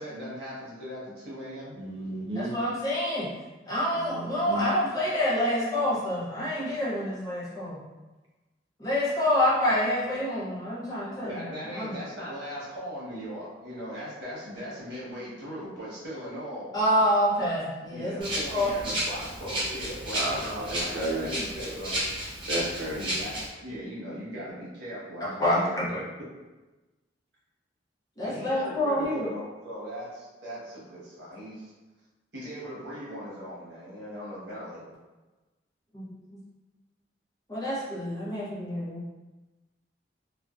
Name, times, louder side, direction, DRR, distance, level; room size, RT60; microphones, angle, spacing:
voice 1, 0.0-1.8 11.2-16.7 17.9-22.0 23.0-25.7 28.2-31.7 32.3-34.9, equal, 65° right, -7 dB, 0.9 m, -39 dB
voice 2, 1.7-2.5 4.0-4.6 20.1-21.3 22.5-23.1, right 1 dB, 80° right, -3 dB, 0.5 m, -33 dB
voice 3, 2.3-3.3 3.7-7.8 8.8-11.4 11.7-11.9 16.7-18.7 25.2-26.0 28.2-29.3 35.9-36.0 36.3-36.4 37.5-39.0, left 1 dB, 20° left, -8 dB, 0.6 m, -27 dB
Rattle (instrument), 18.2-23.4, equal, 25° right, 0.7 m, -32 dB
2.5 x 2.1 x 2.3 m, 1.2 s
head